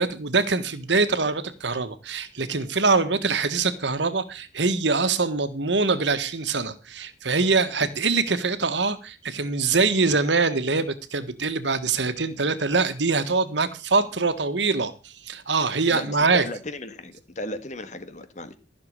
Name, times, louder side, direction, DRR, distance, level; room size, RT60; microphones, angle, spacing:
voice 1, 0.0-16.4, right 4 dB, 75° right, 1.5 m, -24 dB
voice 2, 15.9-18.5, left 1 dB, 40° left, 1.6 m, -35 dB
14.5 x 6.8 x 6.5 m
head